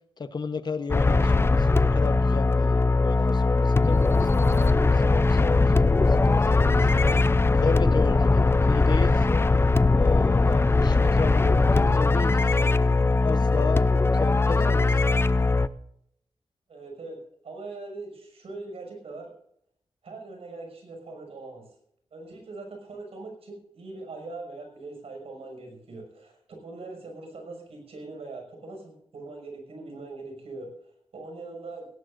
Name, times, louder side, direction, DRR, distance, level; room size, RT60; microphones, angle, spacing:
voice 1, 0.2-7.0 7.5-9.5 10.0-12.8 13.2-15.0, left 4 dB, 45° left, 11 dB, 1.0 m, -34 dB
sound 1, 0.9-15.7, left 3 dB, 25° left, 0.5 m, -20 dB
voice 2, 16.7-17.2 17.4-19.3 20.0-21.7 22.1-30.7 31.1-31.9, right 3 dB, 75° right, 3 dB, 6.1 m, -41 dB
17.5 x 17.5 x 2.6 m, 0.71 s
wide cardioid pair, 105°, 10 cm